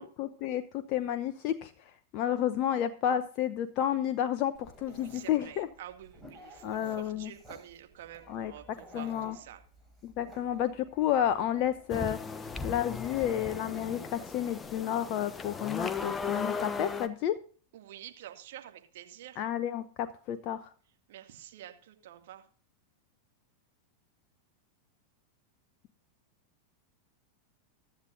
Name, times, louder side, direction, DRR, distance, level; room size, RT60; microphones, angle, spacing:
voice 1, 0.0-1.7 2.1-5.7 6.6-7.3 8.3-8.5 8.9-9.4 10.0-12.2 12.6-17.3 19.4-20.7, left 10 dB, 40° left, 9 dB, 0.8 m, -31 dB
Dog, 4.5-14.8, right 1 dB, 10° right, 6.3 m, -54 dB
voice 2, 4.9-9.6 17.7-19.4 21.1-22.4, right 12 dB, 55° right, 5 dB, 2.1 m, -48 dB
sound 1, 11.9-17.1, left 5 dB, 15° left, 1.1 m, -36 dB
15.5 x 12.0 x 2.6 m, 0.42 s
figure-of-eight pair, 90°, 0 cm